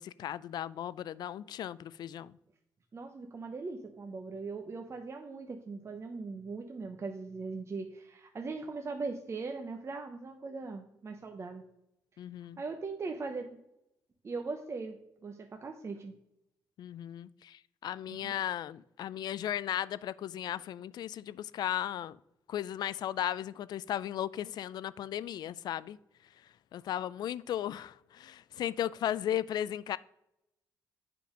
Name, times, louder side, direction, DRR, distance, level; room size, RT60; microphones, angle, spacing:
voice 1, 0.0-2.3 12.2-12.6 16.8-22.2 22.5-26.0 26.7-30.0, left 11 dB, 70° left, 0.3 m, -36 dB
voice 2, 2.9-11.6 12.6-13.5 14.2-16.1 18.1-18.4, right 4 dB, 40° right, 0.8 m, -40 dB
7.7 x 5.2 x 5.0 m
cardioid pair, 80°, 7 cm